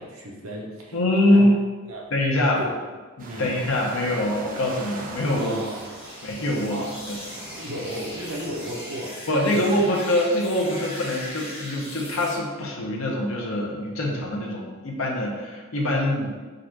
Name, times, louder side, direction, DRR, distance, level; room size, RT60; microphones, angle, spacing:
voice 1, 0.0-1.5 1.8-2.1 2.6-2.8 3.3-3.6 5.3-5.8 6.7-7.0 7.6-9.7, right 1 dB, 85° right, -2 dB, 0.9 m, -34 dB
voice 2, 0.9-1.5 2.1-2.6 3.2-5.6 6.2-6.8 7.1-7.2 9.3-16.3, left 1 dB, 75° left, -2 dB, 0.9 m, -24 dB
sound 1, 3.2-8.8, right 2 dB, 40° right, 0.5 m, -40 dB
sound 2, 4.5-12.4, left 1 dB, 30° left, 1.0 m, -40 dB
3.9 x 2.5 x 4.5 m, 1.4 s
head